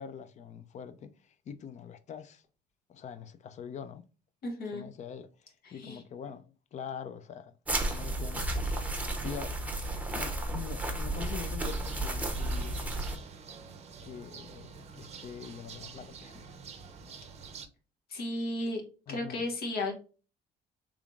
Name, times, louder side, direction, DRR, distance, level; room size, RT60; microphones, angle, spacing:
voice 1, 0.0-2.4 2.9-4.0 4.7-5.3 5.7-7.6 8.0-8.5 9.2-9.6 10.1-12.8 14.0-16.4 17.0-17.1 19.1-19.5, left 7 dB, 45° left, 0.5 m, -44 dB
voice 2, 4.4-4.8 5.6-6.0 18.1-18.8 19.1-19.9, left 2 dB, 65° left, 1.4 m, -34 dB
sound 1, 7.7-13.2, right 2 dB, 10° right, 0.8 m, -33 dB
sound 2, 11.6-17.7, right 6 dB, 40° right, 0.6 m, -47 dB
3.6 x 3.4 x 2.4 m
cardioid pair, 110°, 17 cm